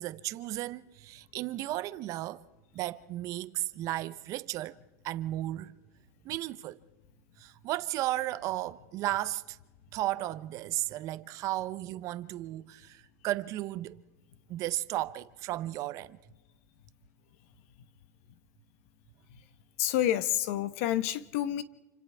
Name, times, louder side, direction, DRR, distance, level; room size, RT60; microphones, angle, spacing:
voice 1, 0.0-2.4 2.7-4.8 5.0-5.7 6.2-6.8 7.4-9.6 9.9-14.0 14.5-16.2, right 15 dB, 40° right, 0.7 m, -34 dB
voice 2, 19.8-21.6, left 12 dB, 60° left, 1.2 m, -29 dB
28.5 x 26.5 x 3.5 m
supercardioid pair, 145°, 9 cm